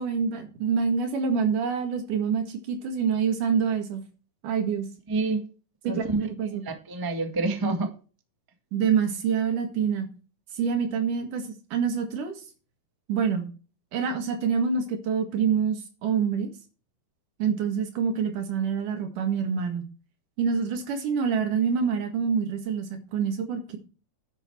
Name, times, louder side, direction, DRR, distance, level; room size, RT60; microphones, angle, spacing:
voice 1, 0.0-4.0 4.4-4.9 5.8-6.6 8.7-10.1 10.5-12.4 13.1-13.5 13.9-16.5 17.4-19.9 20.4-23.8, right 6 dB, 80° right, 3.4 m, -26 dB
voice 2, 5.1-5.5 5.9-6.3 6.6-7.9, right 3 dB, 15° right, 0.9 m, -27 dB
11.5 x 8.2 x 4.5 m
omnidirectional pair, 3.6 m